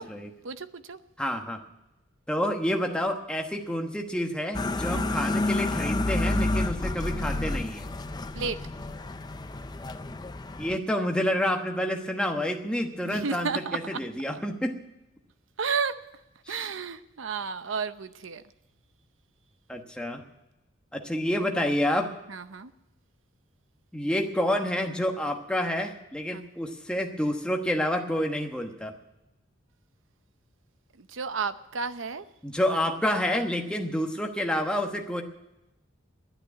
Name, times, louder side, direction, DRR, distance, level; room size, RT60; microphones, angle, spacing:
voice 1, 0.4-1.0 4.9-5.2 8.3-8.6 13.0-14.0 15.6-15.9 16.5-18.4 22.3-22.7 26.3-26.4 31.0-32.3, right 5 dB, 75° right, 12 dB, 0.7 m, -32 dB
voice 2, 1.2-1.6 2.3-7.8 10.6-14.8 16.5-16.7 19.7-20.2 20.9-22.1 23.9-28.9 32.4-35.2, left 1 dB, 5° left, 3 dB, 1.1 m, -28 dB
sound 1, 4.5-10.8, left 2 dB, 20° left, 0.5 m, -29 dB
11.5 x 9.9 x 9.5 m, 0.91 s
head